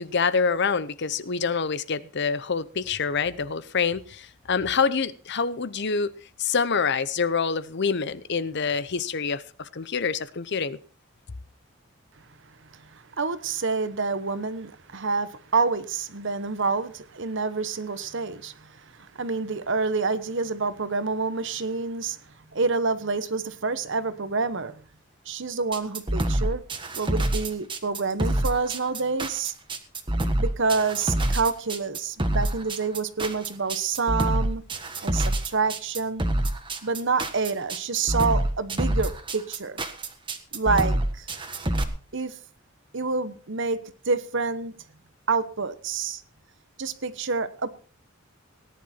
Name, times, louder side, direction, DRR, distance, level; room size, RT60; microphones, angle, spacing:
voice 1, 0.0-6.1 6.4-10.8, left 5 dB, 60° left, 0.8 m, -26 dB
voice 2, 12.7-22.2 22.5-24.8 25.3-26.6 26.9-29.5 30.4-34.6 35.0-36.2 36.8-39.8 40.5-41.3 42.1-42.4 42.9-44.7 45.3-46.2 46.8-47.7, right 4 dB, 65° right, 1.1 m, -28 dB
sound 1, 25.7-41.8, right 1 dB, 25° right, 1.5 m, -26 dB
18.0 x 10.5 x 4.5 m
head